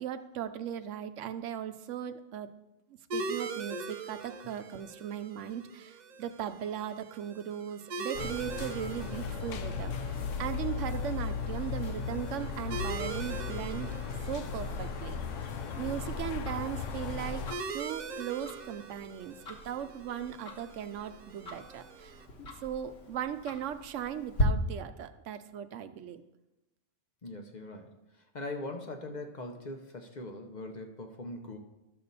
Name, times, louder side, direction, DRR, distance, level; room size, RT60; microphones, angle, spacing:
voice 1, 0.0-2.5 3.1-13.9 14.3-15.2 15.8-17.4 17.7-22.3 22.6-26.2, right 9 dB, 80° right, 10 dB, 0.9 m, -38 dB
sound 1, 3.1-22.2, right 4 dB, 50° right, 0.5 m, -43 dB
sound 2, 8.1-17.5, left 5 dB, 85° left, 1.0 m, -36 dB
Tick-tock, 16.1-24.4, left 1 dB, 60° left, 1.5 m, -40 dB
voice 2, 27.2-31.6, left 2 dB, 40° left, 4 dB, 0.8 m, -41 dB
12.0 x 6.8 x 4.1 m, 0.96 s
omnidirectional pair, 1.3 m